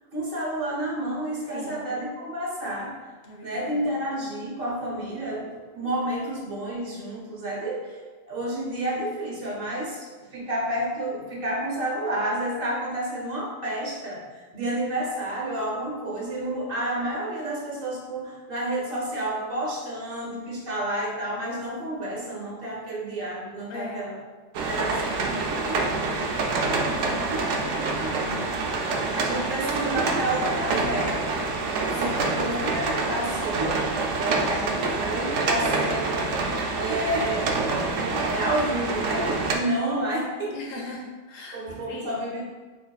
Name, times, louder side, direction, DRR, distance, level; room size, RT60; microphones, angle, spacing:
voice 1, 0.1-2.9 3.4-8.0 8.3-24.1 24.7-25.4 26.8-27.2 29.1-31.1 31.9-33.9 34.1-36.1 36.7-37.5 37.9-40.5 41.5-42.4, right 1 dB, 50° right, -3 dB, 1.2 m, -30 dB
voice 2, 1.5-1.8 3.2-3.8 23.7-24.0 25.7-28.6 32.0-32.7 40.5-41.6 41.9-42.3, left 1 dB, 55° left, -1 dB, 1.0 m, -40 dB
sound 1, 24.5-39.5, right 3 dB, 85° right, 1.0 m, -26 dB
6.9 x 3.2 x 2.3 m, 1.4 s
omnidirectional pair, 1.3 m